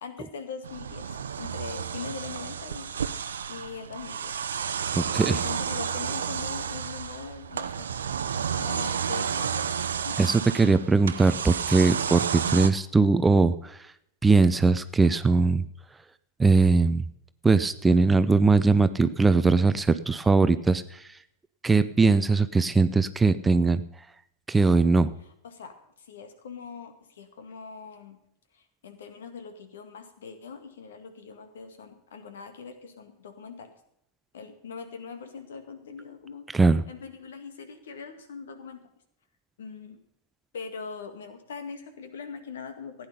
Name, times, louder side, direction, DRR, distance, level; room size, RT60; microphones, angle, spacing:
voice 1, 0.0-2.9 3.5-4.3 5.2-7.9 8.4-10.3 25.4-28.2 28.5-33.7 34.3-38.9 39.6-40.0 40.5-43.1, left 5 dB, 60° left, 8 dB, 1.9 m, -41 dB
sound 1, 0.6-12.7, right 7 dB, 70° right, 0.7 m, -31 dB
voice 2, 5.0-5.4 10.2-13.8 14.2-15.6 16.4-17.1 17.4-21.0 21.6-23.8 24.5-25.1 36.5-36.8, right 3 dB, 10° right, 13 dB, 0.6 m, -21 dB
15.5 x 9.7 x 5.5 m, 0.77 s
figure-of-eight pair, 90°, 0 cm